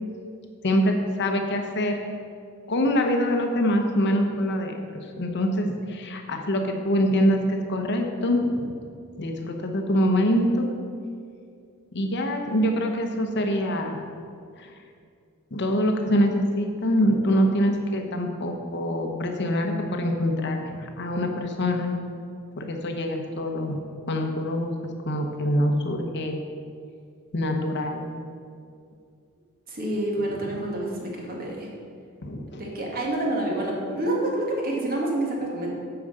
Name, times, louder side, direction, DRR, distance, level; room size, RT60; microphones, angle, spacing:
voice 1, 0.6-2.0 2.7-4.8 5.2-8.7 9.2-10.8 11.9-14.0 14.6-14.7 15.5-22.0 22.6-23.8 24.1-24.7 25.1-26.4 27.3-28.1 30.4-30.5 32.2-32.6, equal, 55° left, 3 dB, 1.0 m, -24 dB
voice 2, 29.7-31.7 32.6-35.7, right 1 dB, 45° right, -2 dB, 1.9 m, -28 dB
9.2 x 5.0 x 6.7 m, 2.3 s
head